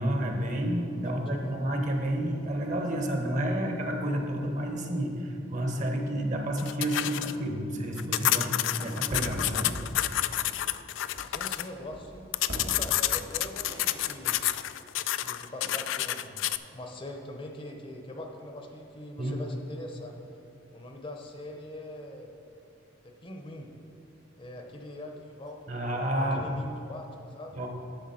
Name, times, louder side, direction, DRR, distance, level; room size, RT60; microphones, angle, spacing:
voice 1, 0.0-9.8 10.4-10.5 19.2-19.3 25.7-26.5 27.5-27.7, right 1 dB, 40° right, 3 dB, 1.0 m, -30 dB
voice 2, 1.0-1.6 11.2-12.3 12.6-14.4 15.2-20.2 20.7-22.3 23.0-23.7 24.4-27.6, left 1 dB, 30° left, 3 dB, 0.7 m, -42 dB
sound 1, 6.6-7.3 8.0-11.6 12.3-16.6, left 13 dB, 80° left, 0.3 m, -29 dB
sound 2, 8.7-15.8, equal, 85° right, 1.7 m, -43 dB
10.0 x 7.0 x 4.2 m, 2.6 s
head